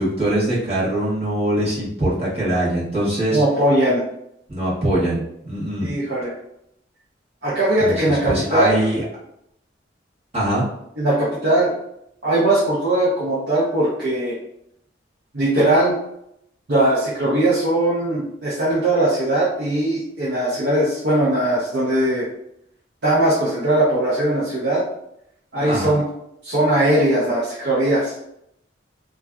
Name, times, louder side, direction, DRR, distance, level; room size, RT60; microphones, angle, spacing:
voice 1, 0.0-3.4 4.5-5.9 7.8-9.0 10.3-10.7 25.7-25.9, right 1 dB, 35° right, -9 dB, 1.1 m, -22 dB
voice 2, 3.3-4.0 5.8-6.3 7.4-8.8 11.0-11.7 12.2-14.4 15.3-15.9 16.7-22.3 23.0-24.8 25.5-26.0 26.4-28.1, right 1 dB, 60° right, -8 dB, 0.7 m, -19 dB
2.5 x 2.3 x 2.2 m, 0.77 s
head